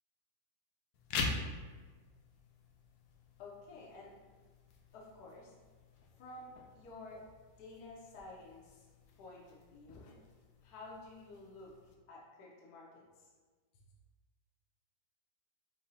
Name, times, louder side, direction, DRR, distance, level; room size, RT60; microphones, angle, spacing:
sound 1, 0.9-11.9, left 4 dB, 85° left, 1.3 m, -45 dB
voice 1, 3.4-4.1 4.9-5.5 6.1-7.2 7.6-8.9 9.2-10.1 10.6-11.7 12.1-13.3, left 2 dB, 60° left, -4 dB, 1.2 m, -52 dB
5.5 x 2.3 x 4.1 m, 1.4 s
omnidirectional pair, 2.0 m